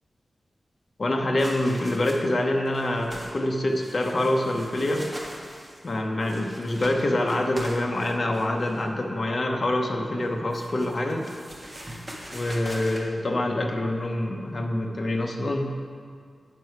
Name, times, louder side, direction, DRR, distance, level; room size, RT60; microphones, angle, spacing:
voice 1, 1.0-5.1 5.8-11.3 12.3-15.8, left 1 dB, 45° left, 1 dB, 0.8 m, -26 dB
sound 1, 1.4-2.4 2.7-3.4 3.7-8.9 10.2-13.0, equal, 15° right, 1.3 m, -42 dB
9.0 x 6.5 x 4.6 m, 2.1 s
wide cardioid pair, 125°, 0 cm